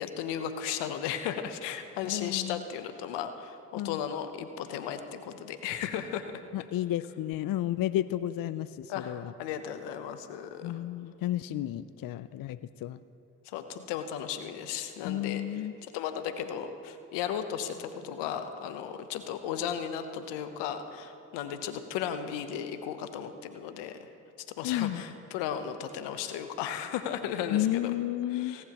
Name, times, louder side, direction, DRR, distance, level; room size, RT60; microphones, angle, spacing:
voice 1, 0.0-6.4 8.9-10.8 13.4-24.1 24.5-28.0 28.3-28.6, left 8 dB, 90° left, 9 dB, 0.8 m, -35 dB
voice 2, 2.0-2.6 3.7-4.0 6.5-9.3 10.6-13.0 15.0-15.7 24.6-25.0 27.5-28.6, left 13 dB, 55° left, 15 dB, 0.5 m, -32 dB
18.0 x 17.0 x 3.0 m, 2.6 s
supercardioid pair, 50°, 41 cm